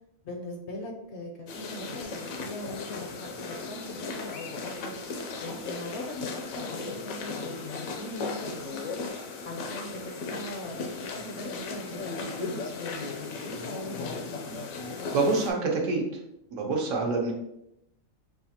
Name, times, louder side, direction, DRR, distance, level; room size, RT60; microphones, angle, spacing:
voice 1, 0.2-9.1 9.4-14.5, left 1 dB, 65° left, 2 dB, 0.8 m, -40 dB
sound 1, 1.5-15.5, left 4 dB, 80° left, 1.1 m, -37 dB
voice 2, 15.1-16.0 16.5-17.3, right 3 dB, 70° right, 1 dB, 1.1 m, -26 dB
5.5 x 2.4 x 2.8 m, 0.82 s
omnidirectional pair, 1.4 m